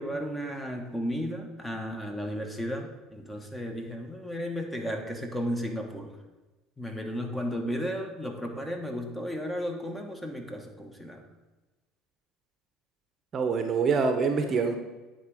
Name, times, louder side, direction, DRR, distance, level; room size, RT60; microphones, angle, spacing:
voice 1, 0.0-6.2 6.8-11.3, equal, 10° left, 4 dB, 1.3 m, -34 dB
voice 2, 13.3-14.8, right 5 dB, 40° right, 6 dB, 0.8 m, -25 dB
9.4 x 3.8 x 4.9 m, 1.2 s
hypercardioid pair, 80°, 0 cm